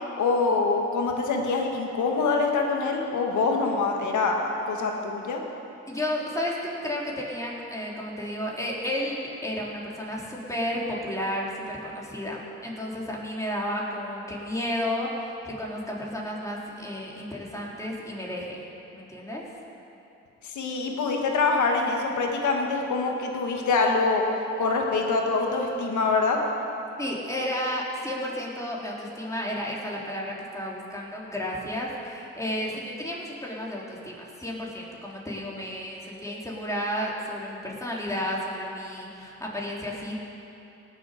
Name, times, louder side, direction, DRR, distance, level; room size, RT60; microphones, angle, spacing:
voice 1, 0.2-4.4 4.7-5.4 20.4-24.2 24.6-26.4, left 4 dB, 75° left, 2 dB, 1.7 m, -25 dB
voice 2, 5.9-18.6 18.9-19.4 27.0-40.1, left 1 dB, 10° left, -4 dB, 3.5 m, -32 dB
18.5 x 7.6 x 5.1 m, 2.9 s
supercardioid pair, 60°, 30 cm